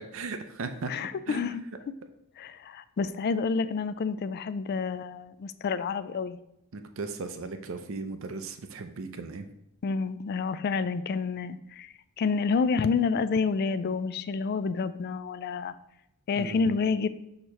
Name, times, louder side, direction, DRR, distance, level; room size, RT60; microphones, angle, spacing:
voice 1, 0.1-0.9 1.3-1.5 6.7-9.5 16.4-16.7, right 3 dB, 65° right, 8 dB, 0.6 m, -37 dB
voice 2, 0.9-1.6 2.4-6.4 9.8-15.7 16.3-17.1, left 5 dB, 50° left, 14 dB, 0.3 m, -29 dB
6.5 x 2.9 x 5.4 m, 0.83 s
head